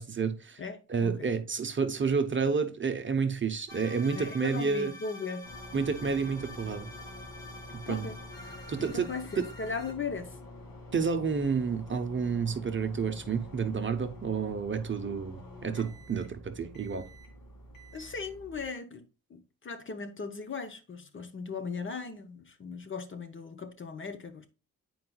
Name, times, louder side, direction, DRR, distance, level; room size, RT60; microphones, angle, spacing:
voice 1, 0.0-0.6 0.9-4.9 5.7-6.9 7.7-8.1 8.7-9.1 9.4-9.5 10.9-17.1, right 5 dB, 35° right, 0.6 m, -30 dB
voice 2, 0.6-1.3 4.1-5.5 7.9-8.2 8.8-10.4 17.9-24.5, left 4 dB, 35° left, 0.8 m, -38 dB
sound 1, 3.7-9.9, left 1 dB, 10° left, 1.3 m, -47 dB
sound 2, 5.4-18.6, left 1 dB, 80° left, 2.1 m, -47 dB
9.3 x 4.7 x 2.3 m
wide cardioid pair, 165°, 34 cm